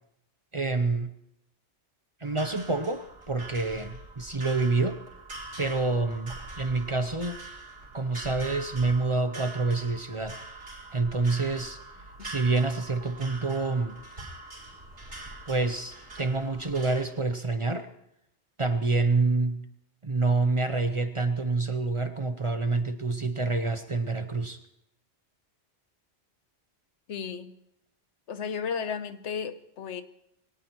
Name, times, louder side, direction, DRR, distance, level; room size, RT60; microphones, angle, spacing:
voice 1, 0.5-1.1 2.2-5.0 5.6-7.4 7.9-11.8 12.2-14.0 15.5-17.9 18.6-19.6 20.0-24.6, right 3 dB, 30° right, 0.7 m, -27 dB
sound 1, 2.2-17.0, right 2 dB, 80° right, 3.8 m, -44 dB
voice 2, 27.1-27.5 28.3-30.0, left 6 dB, 85° left, 1.2 m, -34 dB
22.5 x 18.0 x 3.1 m
omnidirectional pair, 1.2 m